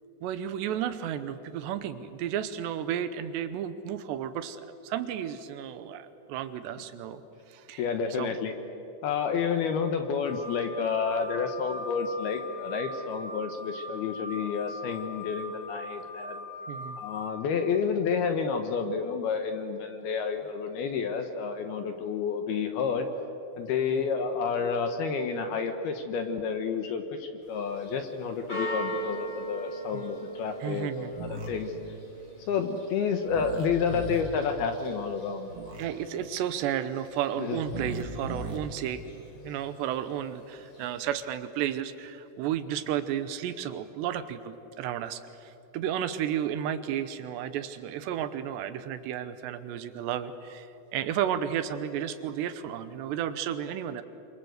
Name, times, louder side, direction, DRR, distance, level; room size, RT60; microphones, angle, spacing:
voice 1, 0.2-7.2 7.5-7.8 8.2-8.4 16.7-17.0 23.9-24.0 29.9-30.0 30.6-31.1 35.8-54.0, right 10 dB, 75° right, 11 dB, 2.8 m, -33 dB
voice 2, 7.8-8.5 9.0-16.5 17.0-23.1 23.6-31.7 32.4-35.5 37.4-37.6, left 6 dB, 70° left, 6 dB, 2.6 m, -30 dB
sound 1, 10.3-17.4, left 1 dB, 85° left, 5.2 m, -40 dB
Church bell, 27.4-41.2, right 1 dB, 35° left, 8.0 m, -42 dB
sound 2, 31.1-31.5 33.3-34.2 35.5-35.8 37.6-38.6, right 1 dB, 35° right, 2.5 m, -37 dB
27.5 x 26.5 x 8.0 m, 3.0 s
omnidirectional pair, 5.6 m